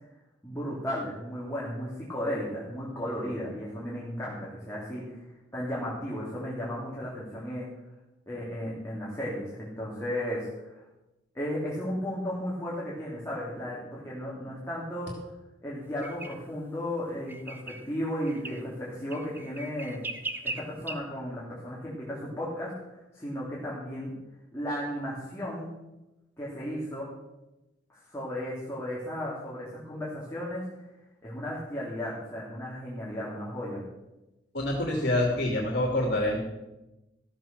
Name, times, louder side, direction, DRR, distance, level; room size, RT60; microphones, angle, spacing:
voice 1, 0.4-5.2 5.5-7.7 8.3-10.5 10.7-10.8 11.3-15.1 15.6-20.0 20.4-24.2 24.5-25.7 26.4-27.1 28.1-30.6 31.2-33.8, equal, 15° left, -7 dB, 2.9 m, -34 dB
sound 1, 16.0-16.3 17.3-17.8 18.3-18.6 19.1-20.9, right 2 dB, 10° right, 0.8 m, -37 dB
voice 2, 34.5-36.4, left 1 dB, 55° left, -1 dB, 2.8 m, -26 dB
14.5 x 7.4 x 6.8 m, 0.98 s
head